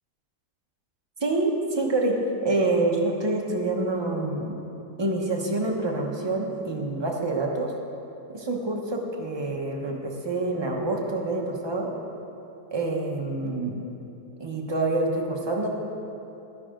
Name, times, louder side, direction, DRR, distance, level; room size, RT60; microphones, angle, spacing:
voice 1, 1.2-4.6 5.0-7.7 8.3-11.9 12.7-13.8 14.4-15.7, right 2 dB, 20° right, 0 dB, 0.7 m, -27 dB
13.5 x 9.9 x 3.8 m, 2.8 s
omnidirectional pair, 1.9 m